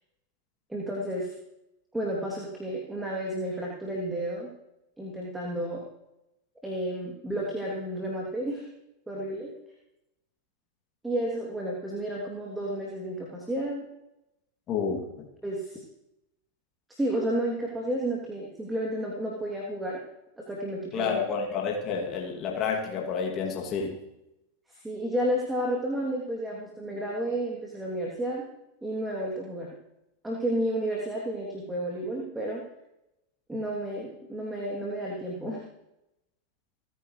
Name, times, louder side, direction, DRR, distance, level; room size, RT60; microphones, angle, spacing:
voice 1, 0.7-1.3 1.9-4.5 5.0-5.8 6.6-8.7 9.1-9.5 11.0-13.9 15.4-15.8 16.9-20.0 20.4-21.1 24.7-28.4 28.8-29.7 30.2-32.6 33.5-35.6, right 1 dB, 5° right, -3 dB, 3.0 m, -31 dB
voice 2, 14.7-15.3 20.9-24.0, left 5 dB, 30° left, -1 dB, 2.6 m, -30 dB
29.0 x 10.0 x 3.3 m, 0.89 s
figure-of-eight pair, 90°, 0 cm